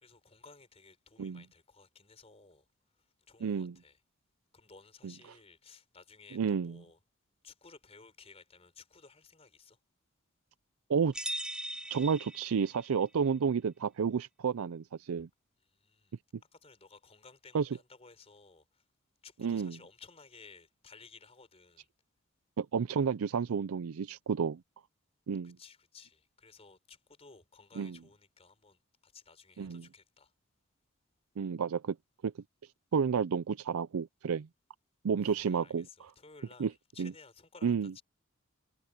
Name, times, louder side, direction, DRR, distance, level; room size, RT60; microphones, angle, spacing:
voice 1, 0.0-2.6 3.0-4.0 4.5-7.0 7.4-9.8 15.7-16.1 16.5-18.8 19.2-21.9 25.4-30.3 35.2-38.0, left 4 dB, 30° left, 4.3 m, -57 dB
voice 2, 3.4-3.8 5.0-5.1 6.3-6.8 10.9-11.1 11.9-15.3 17.5-17.7 19.4-19.8 22.6-24.6 25.3-25.6 27.8-28.0 29.6-29.9 31.4-32.0 32.2-32.3 32.9-34.5 35.0-36.1 36.6-36.7 37.0-37.1 37.6-37.9, right 6 dB, 80° right, 0.4 m, -31 dB
sound 1, 11.1-13.0, right 1 dB, 5° right, 0.4 m, -39 dB
head